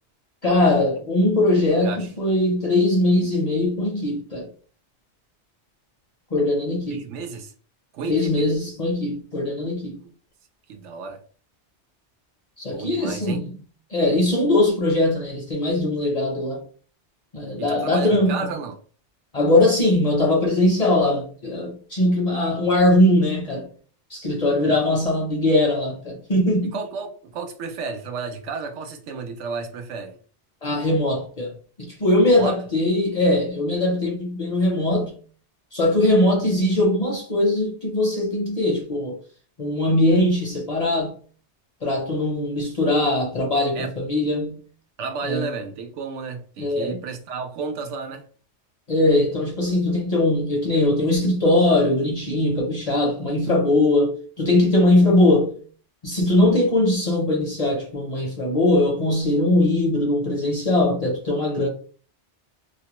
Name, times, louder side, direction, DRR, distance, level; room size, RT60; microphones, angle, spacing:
voice 1, 0.4-4.5 6.3-7.0 8.0-10.0 12.6-13.5 13.9-16.6 17.3-18.5 19.3-23.7 24.1-26.8 30.6-31.5 31.8-35.2 35.7-39.2 39.6-41.2 41.8-44.6 45.2-45.5 46.6-47.0 48.9-55.6 56.0-61.7, left 1 dB, 45° left, 0.5 m, -21 dB
voice 2, 6.9-7.5 7.9-8.5 10.0-10.1 10.7-11.2 12.7-13.4 17.6-18.7 24.6-24.8 26.7-30.2 32.3-32.6 43.7-43.9 45.0-48.3, right 4 dB, 85° right, 0.9 m, -32 dB
2.4 x 2.1 x 2.8 m
omnidirectional pair, 1.2 m